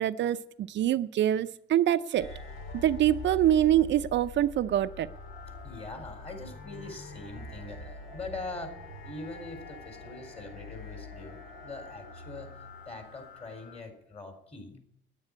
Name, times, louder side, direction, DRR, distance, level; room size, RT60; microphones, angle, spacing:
voice 1, 0.0-2.3 2.8-5.1, right 12 dB, 65° right, 11 dB, 0.5 m, -25 dB
sound 1, 2.2-13.8, left 4 dB, 80° left, 2.3 m, -44 dB
voice 2, 5.6-8.8 9.0-11.4 11.6-12.5 12.8-14.8, left 3 dB, 30° left, 5 dB, 4.0 m, -42 dB
9.7 x 9.5 x 9.7 m, 0.75 s
cardioid pair, 90°, 20 cm